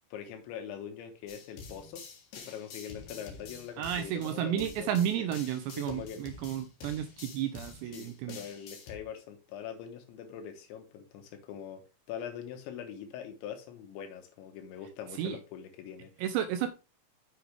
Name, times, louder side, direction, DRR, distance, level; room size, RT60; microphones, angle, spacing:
voice 1, 0.1-2.0 2.3-4.9 5.2-5.3 5.7-6.2 7.9-11.8 12.1-16.1, left 8 dB, 80° left, 3.4 m, -43 dB
sound 1, 1.3-9.0, left 5 dB, 60° left, 2.5 m, -48 dB
voice 2, 3.8-8.4 15.2-15.4 16.2-16.7, right 10 dB, 80° right, 2.6 m, -32 dB
8.0 x 6.3 x 3.4 m
omnidirectional pair, 5.5 m